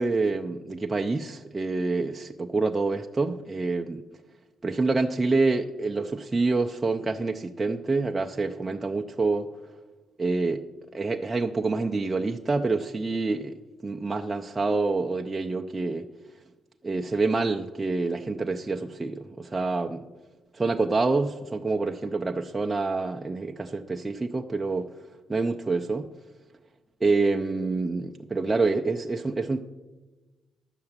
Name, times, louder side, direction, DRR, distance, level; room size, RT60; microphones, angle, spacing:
voice 1, 0.0-4.0 4.6-9.5 10.2-10.6 10.9-16.1 16.8-20.0 20.5-24.9 25.3-26.1 27.0-29.6, right 3 dB, 20° right, 0.5 m, -27 dB
10.5 x 7.6 x 7.3 m
cardioid pair, 90°, 0 cm